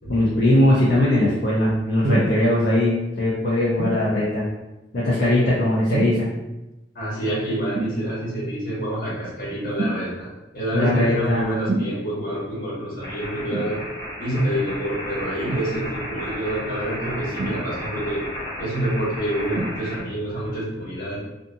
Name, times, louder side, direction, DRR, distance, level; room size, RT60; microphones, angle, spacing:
voice 1, 0.1-4.5 4.9-6.3 10.7-11.5, left 1 dB, 75° left, -8 dB, 0.6 m, -20 dB
sound 1, 2.0-2.4 3.8-4.0 5.9-6.3 7.7-8.0 9.8-10.0 11.7-11.9 13.5-13.7 15.4-15.7 17.4-18.0 19.5-19.8 20.6-20.7, right 2 dB, 45° right, 0.4 m, -26 dB
voice 2, 6.9-10.3 10.5-13.8 14.2-18.3 18.6-21.2, right 1 dB, 50° left, -7 dB, 1.2 m, -27 dB
sound 2, 13.0-20.0, equal, 30° left, 0.9 m, -34 dB
2.5 x 2.4 x 2.6 m, 0.98 s
head